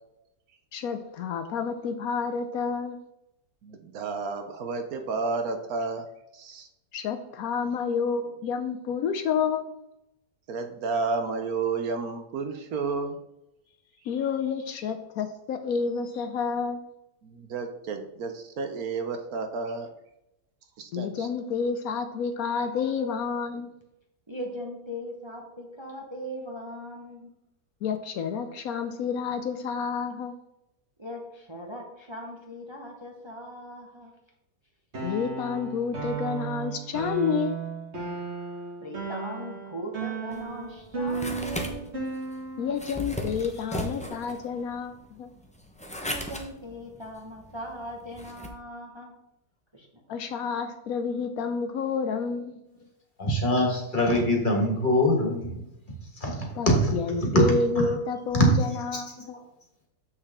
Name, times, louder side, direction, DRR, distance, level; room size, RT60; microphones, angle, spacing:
voice 1, 0.7-3.0 6.9-9.7 14.0-16.8 20.9-23.7 27.8-30.4 35.0-37.6 42.6-45.3 50.1-52.5 56.6-59.4, left 5 dB, 70° left, 8 dB, 1.0 m, -29 dB
voice 2, 3.6-6.1 6.3-6.7 10.5-13.2 17.2-19.9 20.8-21.3, right 4 dB, 70° right, 6 dB, 1.2 m, -31 dB
voice 3, 24.3-27.3 31.0-34.1 38.8-41.9 46.0-49.1 49.7-49.9 50.2-50.3, equal, 20° right, 0 dB, 1.0 m, -39 dB
sound 1, 34.9-42.8, right 4 dB, 45° right, 1.7 m, -35 dB
sound 2, 40.3-48.5, left 1 dB, 10° left, 0.5 m, -37 dB
voice 4, 53.2-55.7 56.2-56.4 56.7-56.9 57.2-57.9 58.4-58.6 59.2-59.3, equal, 30° left, 0 dB, 1.8 m, -23 dB
7.3 x 6.4 x 3.6 m, 0.86 s
omnidirectional pair, 1.7 m